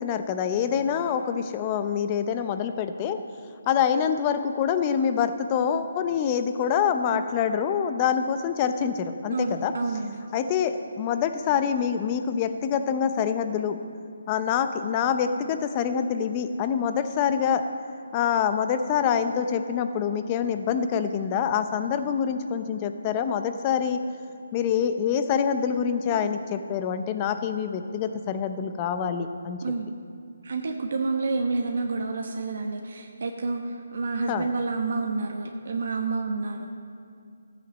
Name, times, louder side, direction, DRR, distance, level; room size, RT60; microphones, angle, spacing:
voice 1, 0.0-3.2 3.7-9.7 10.3-13.8 14.3-17.6 18.1-24.0 24.5-29.6 34.3-34.5, left 7 dB, 25° left, 9 dB, 0.7 m, -26 dB
voice 2, 9.3-10.2 29.6-29.9 30.4-36.7, right 3 dB, 60° right, 3 dB, 1.1 m, -29 dB
13.5 x 8.4 x 6.3 m, 2.4 s
hypercardioid pair, 160°, 0 cm